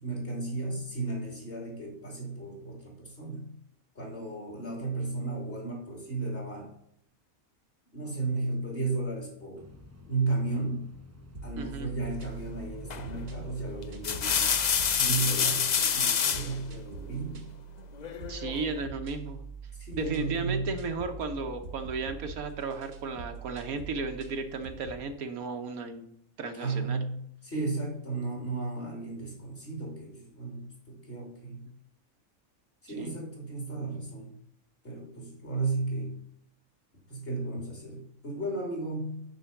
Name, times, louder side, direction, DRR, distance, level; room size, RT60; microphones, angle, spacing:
voice 1, 0.0-3.5 3.9-6.7 7.9-9.6 10.0-11.0 11.4-14.6 14.9-17.4 19.7-20.8 26.5-31.7 32.8-34.3 34.8-36.2 37.1-39.2, right 3 dB, 40° left, -1 dB, 3.1 m, -34 dB
sound 1, 9.5-15.6, left 2 dB, 20° right, 0.5 m, -51 dB
sound 2, 11.3-25.1, right 4 dB, 65° right, 1.3 m, -44 dB
voice 2, 11.6-11.9 18.3-19.4 20.0-26.0 26.4-27.0 33.0-33.1, right 4 dB, 80° right, 6 dB, 1.4 m, -34 dB
sound 3, 12.9-13.2 13.8-16.5 18.0-18.7, left 7 dB, 60° left, 0.4 m, -27 dB
9.1 x 4.4 x 7.0 m, 0.71 s
omnidirectional pair, 1.5 m